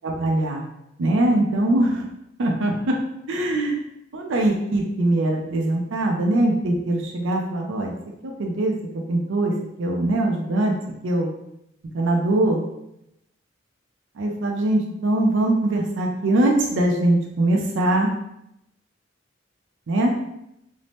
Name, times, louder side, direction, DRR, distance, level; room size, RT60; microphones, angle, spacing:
voice 1, 0.0-0.6 1.0-2.0 2.4-2.9 3.3-3.8 4.1-7.9 8.2-8.7 9.1-10.7 11.0-11.3 11.9-12.6 14.2-18.1 19.9-20.1, right 1 dB, 85° right, 1 dB, 0.4 m, -22 dB
2.6 x 2.0 x 3.2 m, 0.81 s
head